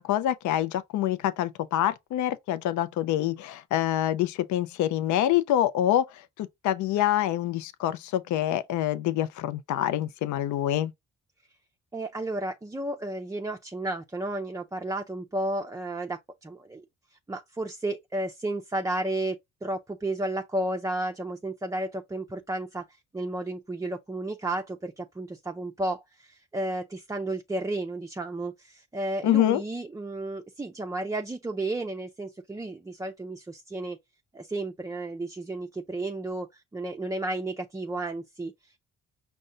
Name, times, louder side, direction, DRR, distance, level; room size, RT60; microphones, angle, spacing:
voice 1, 0.0-10.9 29.2-29.6, left 12 dB, 75° left, 0.5 m, -26 dB
voice 2, 11.9-16.8 17.1-34.0 34.3-38.8, right 2 dB, 10° right, 0.4 m, -33 dB
5.3 x 2.2 x 3.7 m
cardioid pair, 90°, 30 cm